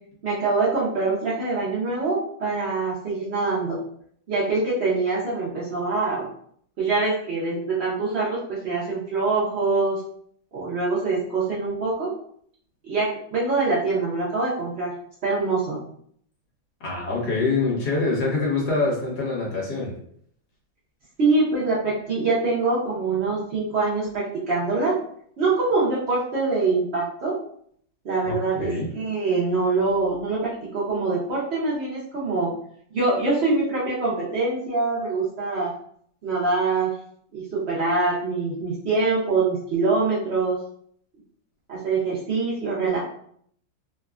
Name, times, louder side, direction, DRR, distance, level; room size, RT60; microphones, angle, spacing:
voice 1, 0.2-3.8 4.3-6.3 6.8-10.0 10.5-12.1 12.8-15.0 15.2-15.8 21.2-24.9 25.4-27.4 28.0-32.5 32.9-35.7 36.2-37.0 37.3-40.6 41.7-43.0, right 3 dB, 80° right, -7 dB, 0.5 m, -24 dB
voice 2, 16.8-19.9 28.2-28.9, left 3 dB, 60° left, -4 dB, 1.4 m, -25 dB
3.3 x 2.1 x 2.3 m, 0.65 s
omnidirectional pair, 2.1 m